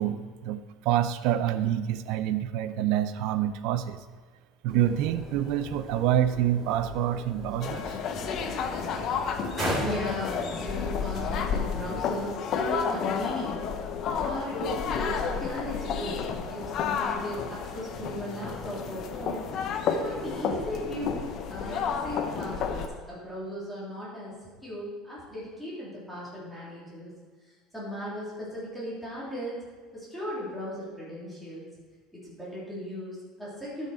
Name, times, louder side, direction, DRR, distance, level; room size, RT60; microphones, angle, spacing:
voice 1, 0.0-4.0 4.6-8.0, right 11 dB, 65° right, 12 dB, 0.5 m, -27 dB
sound 1, 4.7-12.0, equal, 20° right, 3.0 m, -38 dB
sound 2, 7.6-22.9, left 6 dB, 45° left, 0.8 m, -31 dB
voice 2, 9.8-13.7 14.2-19.4 19.9-27.1 27.4-29.6 29.9-31.7 32.1-33.9, left 1 dB, ahead, -9 dB, 3.3 m, -37 dB
12.5 x 6.6 x 4.4 m, 1.5 s
cardioid pair, 155°, 0 cm